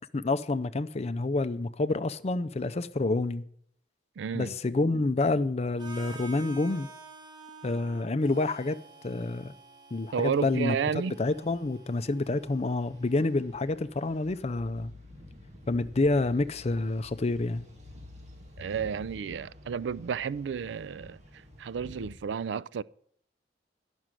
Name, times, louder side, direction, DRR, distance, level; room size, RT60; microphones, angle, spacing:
voice 1, 0.1-3.4 4.3-6.9 7.6-9.5 9.9-10.8 11.1-14.9 15.7-17.6, left 2 dB, 35° left, 0.5 m, -28 dB
voice 2, 4.2-4.5 10.1-11.2 18.6-22.8, right 6 dB, 90° right, 0.4 m, -32 dB
Harmonica, 5.8-13.7, right 3 dB, 25° right, 1.5 m, -50 dB
sound 1, 11.1-22.2, left 2 dB, 40° right, 2.4 m, -51 dB
11.0 x 6.2 x 9.0 m
head